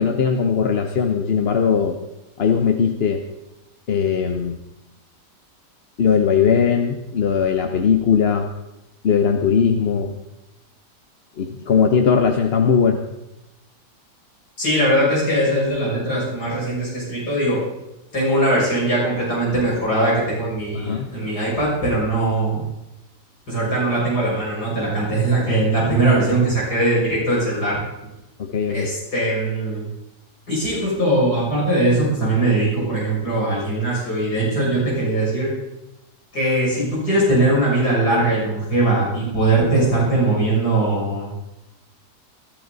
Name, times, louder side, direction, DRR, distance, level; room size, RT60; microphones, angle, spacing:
voice 1, 0.0-2.0 2.4-3.2 3.9-4.6 6.0-8.5 9.0-10.1 11.4-13.0 20.7-21.1 28.4-28.9, left 6 dB, 45° left, 5 dB, 0.9 m, -19 dB
voice 2, 14.6-17.6 18.1-22.6 23.5-27.8 28.7-29.8 30.5-35.5 36.3-41.3, right 1 dB, 65° left, -6 dB, 6.8 m, -20 dB
20.5 x 12.0 x 4.0 m, 0.93 s
omnidirectional pair, 1.9 m